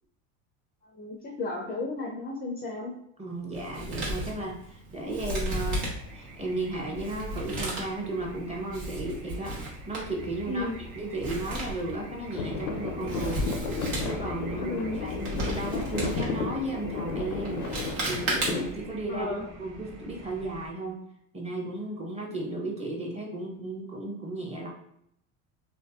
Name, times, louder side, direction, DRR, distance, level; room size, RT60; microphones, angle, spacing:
voice 1, 0.8-2.9 10.5-10.8 14.6-15.0 19.1-19.4, left 2 dB, 25° left, 0 dB, 0.4 m, -33 dB
voice 2, 3.2-5.9 6.1-10.7 11.0-13.5 14.0-21.0 21.3-24.7, right 2 dB, 15° right, 0 dB, 0.7 m, -34 dB
Male speech man speaking, 3.5-18.9, right 1 dB, 75° right, 1.1 m, -35 dB
sound 1, 5.4-20.7, equal, 50° right, 0.8 m, -45 dB
sound 2, 12.4-18.7, left 4 dB, 85° left, 0.6 m, -33 dB
2.6 x 2.5 x 2.3 m, 0.73 s
supercardioid pair, 85°, 42 cm